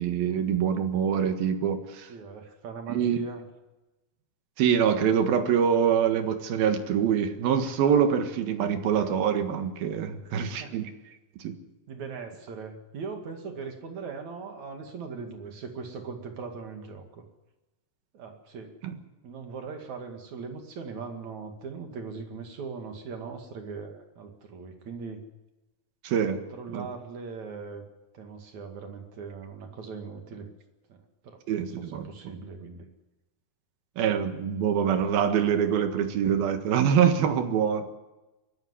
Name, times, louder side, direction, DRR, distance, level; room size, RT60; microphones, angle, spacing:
voice 1, 0.0-2.1 2.9-3.2 4.6-10.8 11.4-11.6 18.8-18.9 26.0-26.4 26.7-26.9 31.5-32.1 34.0-37.9, right 8 dB, 80° right, 7 dB, 3.5 m, -25 dB
voice 2, 2.1-3.5 10.3-10.8 11.9-17.2 18.1-18.8 19.2-25.2 26.3-27.8 28.1-30.5 30.9-32.9, right 5 dB, 55° right, 4 dB, 3.4 m, -40 dB
22.5 x 14.0 x 9.9 m, 1.1 s
omnidirectional pair, 4.2 m